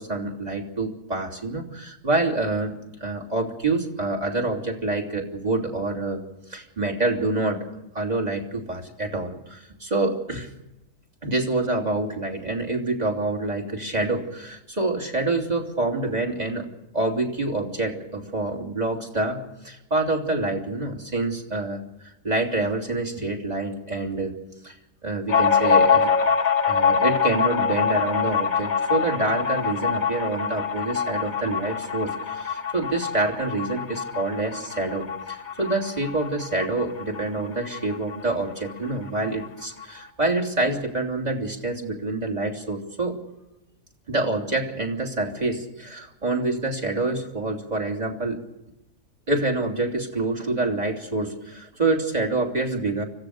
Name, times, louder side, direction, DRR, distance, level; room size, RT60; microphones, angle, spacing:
voice 1, 0.0-2.7 3.0-7.7 7.9-10.5 11.2-21.8 22.2-24.4 24.6-24.8 25.0-26.1 26.7-43.2 44.1-48.4 49.3-53.0, right 2 dB, 25° right, 0 dB, 3.1 m, -27 dB
sound 1, 25.3-38.4 38.7-38.8 39.1-39.9, left 6 dB, 65° left, 2.1 m, -24 dB
25.5 x 16.0 x 6.6 m, 0.93 s
omnidirectional pair, 1.5 m